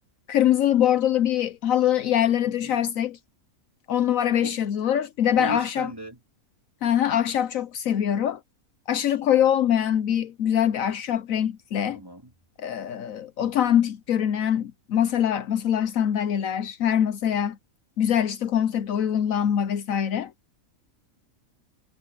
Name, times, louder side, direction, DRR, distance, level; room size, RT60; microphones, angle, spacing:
voice 1, 0.3-3.2 3.9-5.9 6.8-8.4 8.9-12.0 12.6-17.6 18.0-20.3, left 10 dB, 70° left, 1.1 m, -23 dB
voice 2, 2.5-2.8 4.4-4.6 5.3-6.2 11.9-12.3, equal, 15° right, 2.9 m, -37 dB
omnidirectional pair, 1.5 m